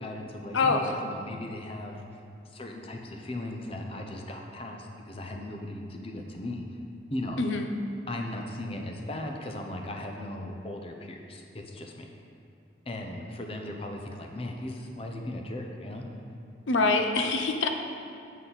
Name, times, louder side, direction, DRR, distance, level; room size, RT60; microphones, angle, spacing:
voice 1, 0.0-2.0 2.5-6.6 7.1-7.4 8.1-11.9 12.9-16.0, left 1 dB, 30° left, 2 dB, 0.7 m, -37 dB
voice 2, 0.5-1.0 7.4-7.7 16.7-17.7, left 3 dB, 90° left, 5 dB, 0.7 m, -25 dB
8.3 x 7.3 x 4.1 m, 2.6 s
head